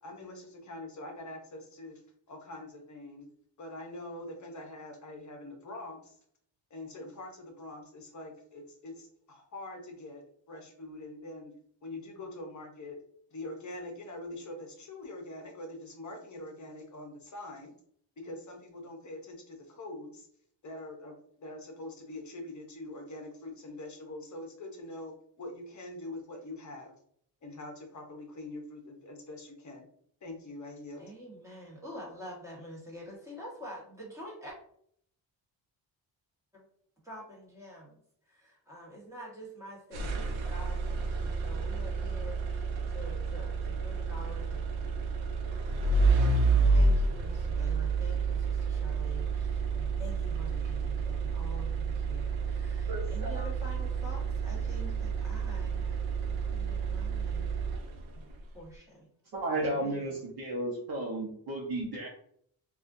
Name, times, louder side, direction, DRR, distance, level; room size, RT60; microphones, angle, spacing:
voice 1, 0.0-2.0 2.3-3.3 3.6-6.2 6.7-11.5 11.8-13.0 13.3-17.7 18.2-20.3 20.6-26.9 27.4-29.9 30.2-31.0, left 2 dB, 40° left, 3 dB, 0.8 m, -44 dB
voice 2, 31.0-34.5 36.5-36.6 37.0-38.0 38.3-44.6 46.7-57.5 58.5-59.1 59.8-60.1, equal, 5° right, -4 dB, 1.3 m, -47 dB
sound 1, 39.9-58.2, right 4 dB, 85° right, 0.7 m, -30 dB
voice 3, 52.9-53.5 59.3-62.1, right 1 dB, 55° right, -4 dB, 0.9 m, -34 dB
4.1 x 2.4 x 2.5 m, 0.65 s
wide cardioid pair, 140°, 45 cm